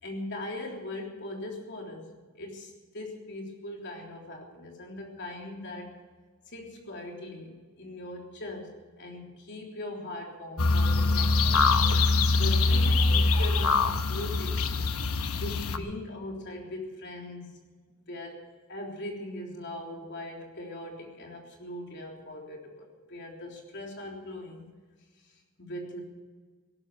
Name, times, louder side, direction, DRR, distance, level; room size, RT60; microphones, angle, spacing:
voice 1, 0.0-2.1 2.3-5.9 6.5-11.8 12.3-14.6 15.3-17.6 18.1-18.4 18.7-24.7 25.2-25.3 25.6-26.0, left 1 dB, 55° left, 1 dB, 3.6 m, -40 dB
sound 1, 10.6-15.8, left 3 dB, 80° left, 1.1 m, -24 dB
17.5 x 12.5 x 6.4 m, 1.4 s
head